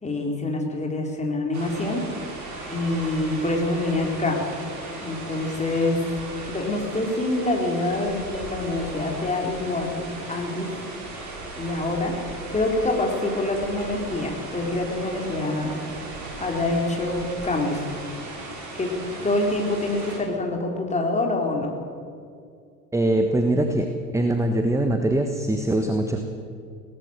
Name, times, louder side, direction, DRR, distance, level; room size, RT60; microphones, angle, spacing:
voice 1, 0.0-2.1 2.7-4.4 5.0-6.0 6.5-10.7 11.6-15.7 16.4-17.8 18.7-18.9 19.2-21.7, left 2 dB, 15° left, 0 dB, 4.3 m, -26 dB
sound 1, 1.5-20.2, right 2 dB, 35° right, 6.2 m, -37 dB
voice 2, 22.9-23.9 24.1-26.2, right 1 dB, 5° right, 5 dB, 1.4 m, -22 dB
22.0 x 18.0 x 6.7 m, 2.3 s
figure-of-eight pair, 75°, 48 cm